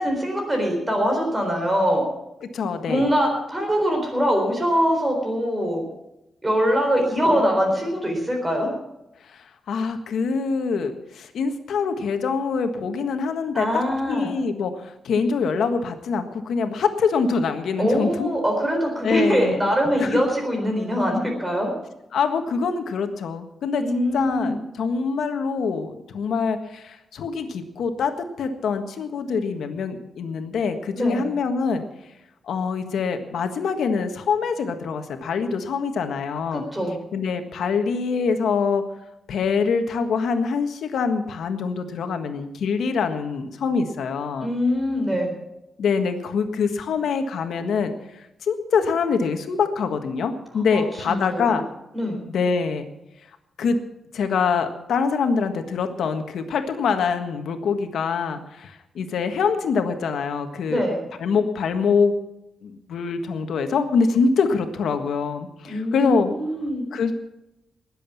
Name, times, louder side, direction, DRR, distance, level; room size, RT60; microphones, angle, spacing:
voice 1, 0.0-2.0 2.9-5.8 6.4-8.7 13.5-14.3 17.8-21.7 23.8-24.6 31.0-31.3 36.5-37.0 44.4-45.3 50.7-51.6 51.9-52.2 60.7-61.0 65.7-66.9, equal, 10° right, 1 dB, 4.0 m, -23 dB
voice 2, 2.4-3.1 9.3-18.3 19.0-19.7 20.0-20.3 22.1-31.8 32.5-36.6 37.1-38.8 39.3-44.5 45.8-51.7 52.3-52.8 53.6-53.8 54.1-60.8 61.2-62.1 62.6-66.3 66.9-67.1, left 5 dB, 80° left, 7 dB, 1.5 m, -24 dB
19.5 x 7.8 x 7.1 m, 0.90 s
wide cardioid pair, 160°, 0 cm